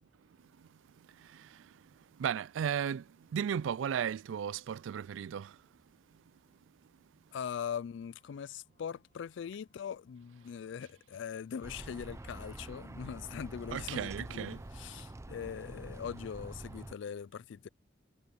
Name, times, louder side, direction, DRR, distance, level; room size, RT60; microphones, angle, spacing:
voice 1, 1.2-1.6 2.2-3.1 3.3-5.6 13.7-14.6, right 8 dB, 75° right, 0.3 m, -35 dB
voice 2, 7.3-17.7, left 7 dB, 70° left, 0.3 m, -41 dB
sound 1, 7.4-11.9, left 4 dB, 35° left, 6.5 m, -80 dB
sound 2, 11.6-16.9, right 1 dB, 15° right, 0.5 m, -46 dB
head